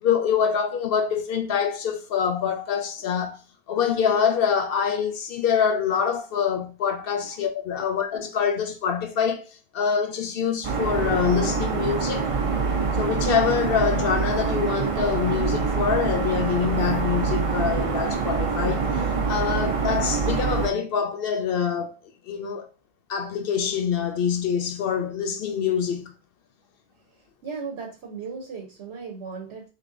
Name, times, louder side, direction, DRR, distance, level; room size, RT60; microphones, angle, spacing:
voice 1, 0.0-3.4 3.7-9.5 9.7-12.3 13.0-18.9 19.3-21.9 22.3-22.7 23.1-26.1, left 7 dB, 65° left, 0.7 m, -25 dB
sound 1, 10.6-20.7, right 5 dB, 45° right, 0.4 m, -25 dB
voice 2, 27.4-29.7, right 5 dB, 80° right, 1.0 m, -36 dB
3.8 x 3.3 x 2.5 m
omnidirectional pair, 1.1 m